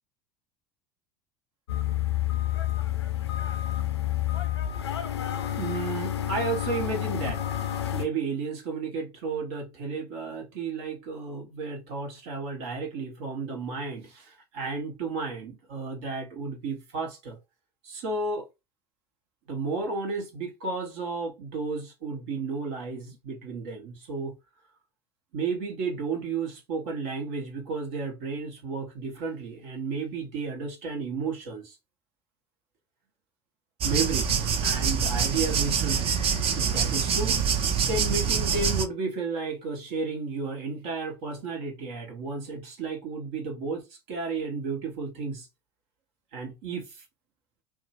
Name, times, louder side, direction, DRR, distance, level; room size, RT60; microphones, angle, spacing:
sound 1, 1.7-8.1, left 12 dB, 90° left, 0.4 m, -29 dB
voice 1, 5.6-7.4 7.9-17.4 17.8-18.5 19.5-24.3 25.3-31.8 33.8-36.1 36.5-37.4 37.8-45.5 46.3-47.0, right 4 dB, 65° right, 1.1 m, -33 dB
sound 2, 33.8-38.9, right 6 dB, 45° right, 0.6 m, -25 dB
2.7 x 2.2 x 2.7 m
hypercardioid pair, 75°, 13 cm